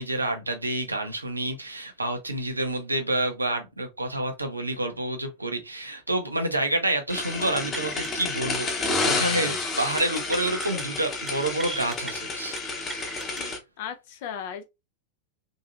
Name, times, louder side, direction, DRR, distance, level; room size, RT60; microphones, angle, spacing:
voice 1, 0.0-12.6 13.4-13.5, right 1 dB, 85° right, 0.7 m, -28 dB
sound 1, 7.1-13.6, left 3 dB, 25° left, 1.0 m, -30 dB
sound 2, 7.7-8.3 8.5-8.7 9.0-9.4 10.0-10.8 11.1-11.3 11.6-12.1 12.6-13.4, right 2 dB, 10° right, 0.6 m, -38 dB
voice 2, 13.4-14.6, left 8 dB, 50° left, 0.5 m, -37 dB
3.8 x 2.7 x 2.5 m
figure-of-eight pair, 90°, 0 cm